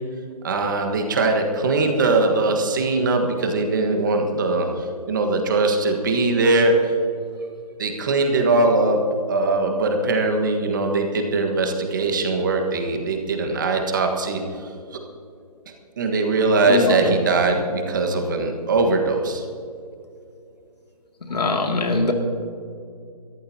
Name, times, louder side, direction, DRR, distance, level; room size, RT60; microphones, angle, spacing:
voice 1, 0.4-6.9 7.8-9.0 9.3-14.4 16.0-19.4, right 3 dB, 30° right, 3 dB, 1.5 m, -21 dB
voice 2, 16.7-17.2 21.3-22.1, left 2 dB, 85° left, 3 dB, 2.5 m, -21 dB
23.0 x 14.0 x 2.8 m, 2.5 s
hypercardioid pair, 170°, 20 cm